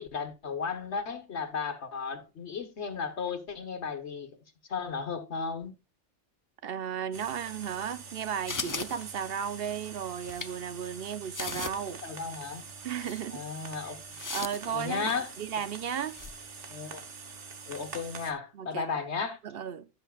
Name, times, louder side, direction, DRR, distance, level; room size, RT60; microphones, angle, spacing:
voice 1, 0.0-4.3 4.7-5.7 11.9-12.6 13.3-14.0 14.7-15.3 16.7-17.0 17.7-19.4, left 5 dB, 70° left, 1.7 m, -34 dB
voice 2, 6.6-12.0 12.8-13.5 14.3-16.2 18.5-19.0 19.4-19.9, right 8 dB, 60° right, 0.9 m, -35 dB
sound 1, 7.1-18.3, right 5 dB, 85° right, 1.7 m, -45 dB
sound 2, 8.5-9.5 10.2-10.5 11.0-11.1 11.3-11.9 12.3-12.4 13.0-13.2 14.1-15.2 16.1-16.3, left 4 dB, 30° left, 0.3 m, -38 dB
15.5 x 6.4 x 2.4 m
omnidirectional pair, 1.2 m